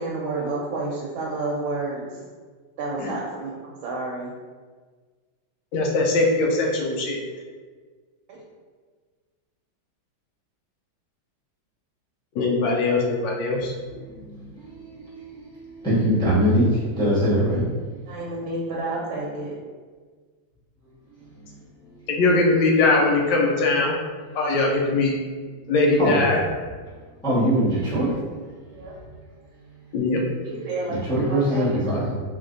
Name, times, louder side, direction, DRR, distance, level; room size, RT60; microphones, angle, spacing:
voice 1, 0.0-2.2 2.8-4.3 8.3-8.4 18.1-19.5 28.7-28.9 30.4-31.0 31.3-32.1, right 2 dB, 80° right, -4 dB, 1.4 m, -30 dB
voice 2, 5.7-7.2 12.3-13.7 22.1-23.9 24.3-25.1 25.7-26.4 29.9-30.2, left 3 dB, 75° left, 0 dB, 1.2 m, -21 dB
voice 3, 13.9-17.7 21.2-22.0 26.0-26.2 27.2-28.2 30.9-32.1, equal, 5° left, -9 dB, 0.6 m, -23 dB
3.6 x 3.2 x 2.5 m, 1.5 s
omnidirectional pair, 2.2 m